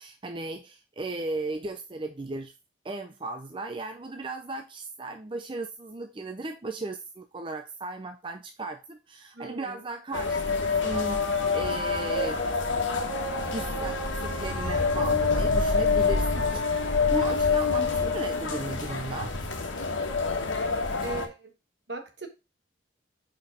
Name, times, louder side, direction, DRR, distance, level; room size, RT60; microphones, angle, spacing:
voice 1, 0.0-2.5 2.8-11.2 11.5-12.5 13.4-16.5 17.1-19.3, right 2 dB, 25° right, 0.5 m, -36 dB
voice 2, 9.3-9.8 21.0-21.5 21.9-22.3, right 3 dB, 60° right, 1.5 m, -38 dB
sound 1, 10.1-21.3, left 4 dB, 85° left, 1.4 m, -26 dB
5.2 x 4.7 x 5.0 m
head